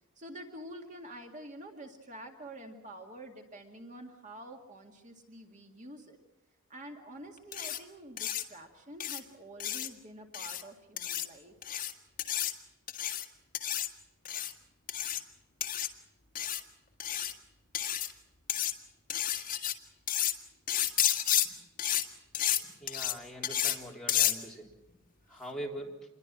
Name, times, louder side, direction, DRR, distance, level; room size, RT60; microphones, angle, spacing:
voice 1, 0.2-6.2 6.7-11.6, right 1 dB, 35° right, 3 dB, 2.0 m, -47 dB
sound 1, 7.5-7.8 8.2-8.4 9.0-9.2 9.6-9.9 10.3-10.6 11.0-11.3 11.6-11.9 12.2-12.5 12.9-13.2 13.5-13.9 14.2-14.5 14.9-15.2 15.6-15.9 16.4-16.6 17.0-17.3 17.7-18.1 18.5-18.7 19.1-19.7 20.1-20.3 20.7-21.5 21.8-22.0 22.3-22.6 22.9-23.1 23.4-23.8 24.1-24.3, left 11 dB, 40° left, 1.7 m, -31 dB
voice 2, 22.8-24.7 25.3-26.0, right 1 dB, ahead, -2 dB, 3.7 m, -42 dB
27.5 x 22.0 x 6.1 m, 1.0 s
head